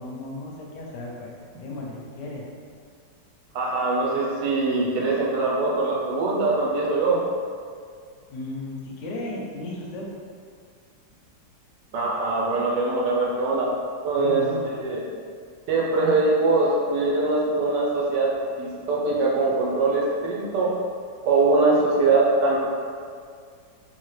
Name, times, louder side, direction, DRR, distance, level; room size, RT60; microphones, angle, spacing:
voice 1, 0.0-1.3 1.6-2.4 8.3-10.1 14.2-14.7, left 2 dB, 75° left, -2 dB, 1.2 m, -35 dB
voice 2, 3.5-7.2 11.9-13.7 14.0-15.0 15.7-20.7 21.2-22.6, right 3 dB, 75° right, -3 dB, 1.2 m, -22 dB
3.6 x 2.8 x 3.1 m, 2.1 s
omnidirectional pair, 2.0 m